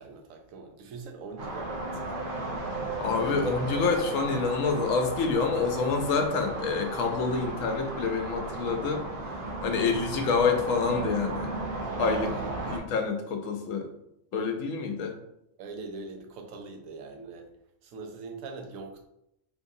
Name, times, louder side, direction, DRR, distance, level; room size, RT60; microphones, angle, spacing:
voice 1, 0.0-1.9 12.2-12.5 15.6-17.6 17.8-19.0, right 4 dB, 80° right, 4 dB, 1.0 m, -42 dB
sound 1, 1.4-12.8, right 2 dB, 50° right, 0.7 m, -35 dB
voice 2, 3.0-9.1 9.6-11.5 12.0-12.3 12.6-13.9 14.3-15.2, left 4 dB, 80° left, 5 dB, 1.0 m, -27 dB
3.6 x 3.1 x 2.6 m, 0.81 s
omnidirectional pair, 1.4 m